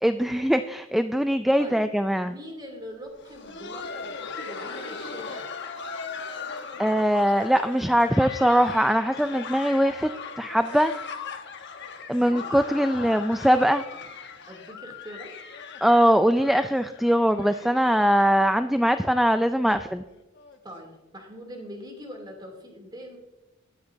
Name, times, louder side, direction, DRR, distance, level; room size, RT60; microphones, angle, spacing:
voice 1, 0.0-2.3 6.8-10.1 10.4-10.9 12.1-13.8 15.8-20.0, equal, ahead, 8 dB, 0.3 m, -21 dB
voice 2, 2.2-5.5 12.2-13.0 14.4-15.3 20.6-23.2, equal, 20° right, 2 dB, 2.8 m, -42 dB
Laughter, 3.1-18.7 19.0-19.1 19.7-19.8 20.4-20.6 21.6-21.7, left 5 dB, 60° left, 1.1 m, -39 dB
21.0 x 8.1 x 2.7 m, 1.0 s
head